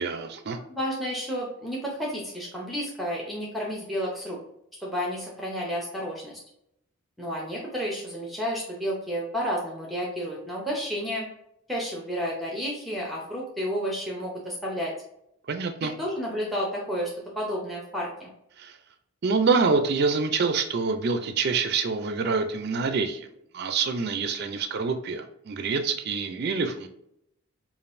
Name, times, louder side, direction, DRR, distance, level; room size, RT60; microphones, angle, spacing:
voice 1, 0.0-0.6 15.5-15.9 18.6-18.8 19.2-23.3 23.5-26.9, right 4 dB, 45° right, 7 dB, 0.4 m, -26 dB
voice 2, 0.7-4.4 4.8-6.4 7.2-11.2 11.7-14.9 15.8-17.1 17.4-18.3, equal, ahead, -2 dB, 0.6 m, -31 dB
5.2 x 2.4 x 2.5 m, 0.77 s
head